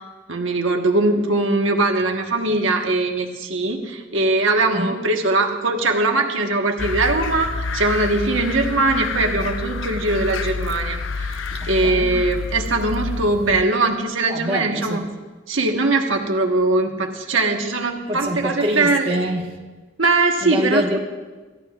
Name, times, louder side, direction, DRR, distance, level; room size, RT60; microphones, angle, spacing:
voice 1, 0.3-11.4 11.6-15.0 15.5-19.1 20.0-21.0, right 2 dB, 85° right, 2 dB, 1.4 m, -21 dB
sound 1, 6.8-13.6, left 4 dB, 80° left, 0.7 m, -28 dB
voice 2, 11.8-12.1 14.3-15.1 18.1-19.6 20.4-21.0, equal, 25° right, -1 dB, 1.4 m, -25 dB
27.5 x 13.5 x 2.5 m, 1.3 s
head